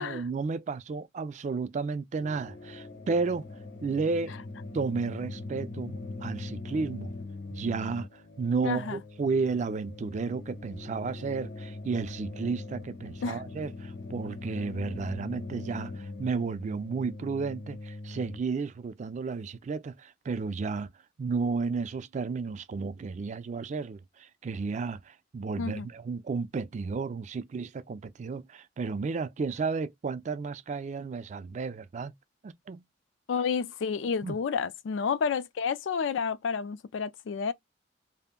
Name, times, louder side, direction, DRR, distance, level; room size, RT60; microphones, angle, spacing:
voice 1, 0.0-3.4 3.8-4.3 4.7-7.1 7.5-20.9 21.2-32.1 32.4-32.8 34.2-34.4, right 4 dB, 40° right, 0.3 m, -32 dB
sound 1, 2.2-18.4, left 2 dB, 65° left, 0.9 m, -41 dB
voice 2, 8.6-9.0 13.2-13.4 25.6-25.9 33.3-37.5, left 6 dB, 85° left, 0.4 m, -30 dB
2.5 x 2.0 x 3.6 m
head